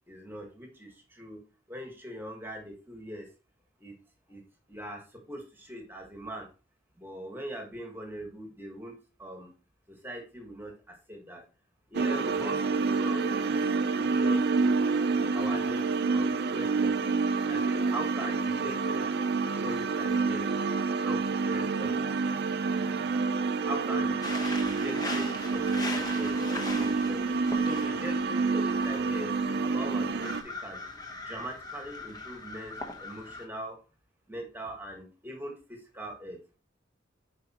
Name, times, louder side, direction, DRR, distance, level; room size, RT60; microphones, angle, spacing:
voice 1, 0.1-1.4 1.7-3.3 3.8-4.0 4.3-4.4 4.7-5.0 5.3-6.5 7.0-9.5 9.9-11.4 11.9-13.7 13.9-14.7 15.3-15.8 16.1-17.0 17.5-19.1 19.6-20.5 21.0-22.0 23.6-24.1 24.6-27.2 27.6-29.3 29.6-33.8 34.3-36.4, right 1 dB, 10° right, 2 dB, 1.4 m, -41 dB
sound 1, 11.9-30.4, right 4 dB, 55° right, 0.5 m, -28 dB
sound 2, 24.2-33.5, left 2 dB, 20° left, 1.0 m, -41 dB
7.7 x 5.1 x 2.9 m, 0.34 s
head